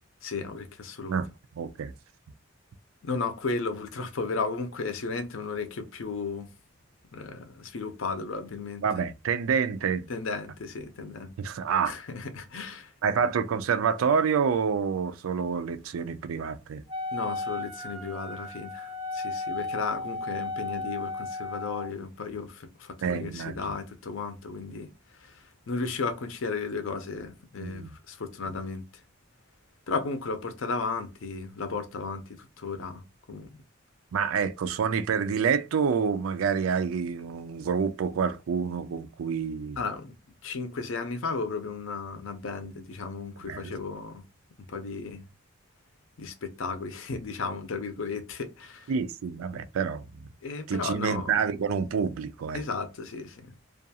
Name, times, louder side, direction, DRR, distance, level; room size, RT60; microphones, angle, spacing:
voice 1, 0.2-1.2 3.0-6.5 7.1-8.8 10.1-11.3 11.9-12.9 17.1-28.9 29.9-33.6 39.8-40.2 40.4-44.2 44.6-45.3 46.2-48.9 50.4-51.3 52.5-53.5, left 4 dB, 70° left, 0.6 m, -34 dB
voice 2, 1.6-1.9 8.8-10.1 11.4-11.9 13.0-16.8 23.0-23.6 27.6-27.9 34.1-39.8 43.5-43.8 48.9-50.3 50.7-52.6, right 6 dB, 85° right, 0.4 m, -28 dB
Wind instrument woodwind instrument, 16.9-21.9, left 3 dB, 25° right, 0.4 m, -34 dB
2.5 x 2.3 x 2.7 m
head